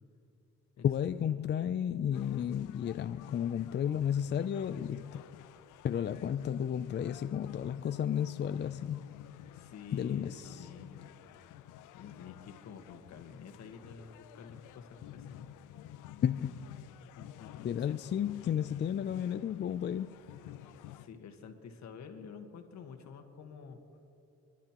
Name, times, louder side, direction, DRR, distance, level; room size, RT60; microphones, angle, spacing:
voice 1, 0.8-5.2 5.8-9.1 9.9-10.7 16.2-16.6 17.6-20.2, left 9 dB, 35° left, 0.4 m, -33 dB
sound 1, 2.1-21.1, left 12 dB, 85° left, 0.6 m, -52 dB
voice 2, 9.5-11.1 11.9-15.7 17.1-18.0 20.9-23.8, left 6 dB, 65° left, 1.5 m, -49 dB
28.0 x 11.5 x 3.0 m
cardioid pair, 90°, 30 cm